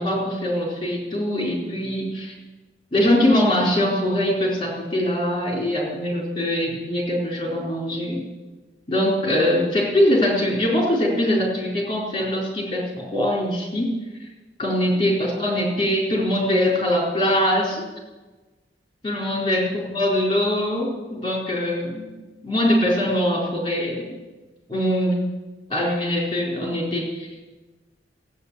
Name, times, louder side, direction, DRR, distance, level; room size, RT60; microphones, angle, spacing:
voice 1, 0.0-2.3 2.9-8.2 8.9-14.0 14.6-17.8 19.0-19.6 19.9-22.1 22.4-24.0 24.7-25.2 25.7-27.3, left 1 dB, 30° left, -2 dB, 4.1 m, -22 dB
15.0 x 8.9 x 8.3 m, 1.2 s
head